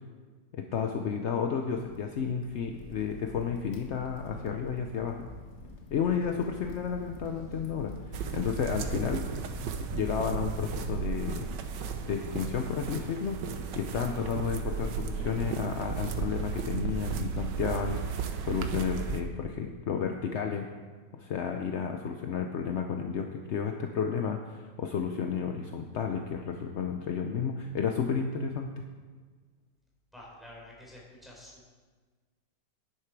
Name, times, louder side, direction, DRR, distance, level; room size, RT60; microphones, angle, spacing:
voice 1, 0.5-5.2 5.9-7.9 8.3-9.3 9.9-11.5 12.1-13.4 13.8-20.7 21.1-28.7, left 6 dB, 65° left, 4 dB, 0.7 m, -32 dB
Crackle, 1.7-11.0, left 3 dB, 45° left, 1.4 m, -46 dB
sound 1, 8.1-19.2, right 6 dB, 80° right, 1.5 m, -34 dB
voice 2, 30.1-31.7, left 1 dB, ahead, -5 dB, 3.6 m, -49 dB
10.5 x 10.0 x 4.6 m, 1.4 s
omnidirectional pair, 1.9 m